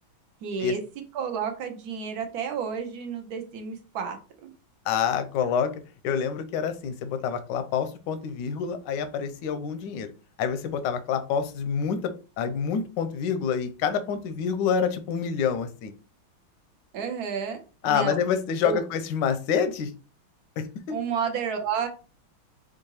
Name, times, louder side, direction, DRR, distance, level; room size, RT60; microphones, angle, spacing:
voice 1, 0.4-0.8 1.1-4.5 16.9-17.6 17.8-18.2 18.6-18.8 20.9-21.9, right 7 dB, 65° right, 5 dB, 1.0 m, -31 dB
voice 2, 4.9-5.7 6.0-10.1 10.4-12.1 12.4-15.9 17.8-19.9 20.6-21.0, left 7 dB, 75° left, 10 dB, 1.1 m, -27 dB
4.6 x 2.4 x 2.9 m, 0.34 s
omnidirectional pair, 2.2 m